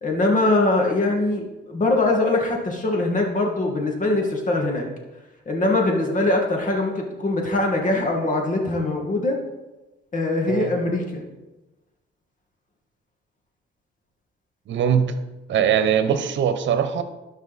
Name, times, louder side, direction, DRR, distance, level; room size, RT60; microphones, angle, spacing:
voice 1, 0.0-4.9 5.5-9.4 10.1-11.3, left 2 dB, 40° left, 1 dB, 2.2 m, -22 dB
voice 2, 14.7-15.1 15.5-17.0, right 8 dB, 70° right, 10 dB, 1.0 m, -21 dB
12.0 x 5.6 x 4.2 m, 1.1 s
cardioid pair, 90°, 20 cm